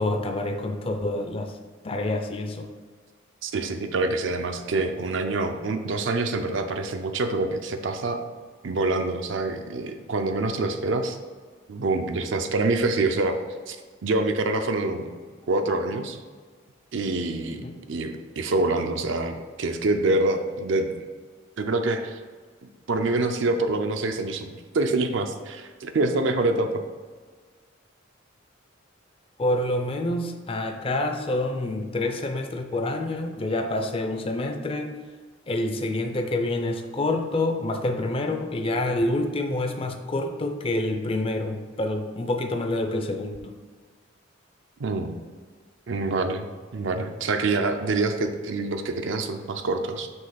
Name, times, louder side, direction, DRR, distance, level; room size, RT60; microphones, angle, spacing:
voice 1, 0.0-1.5 1.8-2.7 17.6-17.8 29.4-34.9 35.5-43.5, left 2 dB, 25° left, 5 dB, 0.4 m, -27 dB
voice 2, 3.4-8.2 8.6-11.2 11.7-13.4 13.7-13.8 14.0-15.2 15.5-16.2 16.9-17.6 17.9-21.1 21.6-22.2 22.9-24.5 24.7-26.7 44.8-45.2 45.9-46.5 46.7-50.1, right 2 dB, 60° right, 6 dB, 0.5 m, -26 dB
5.4 x 3.3 x 5.6 m, 1.5 s
head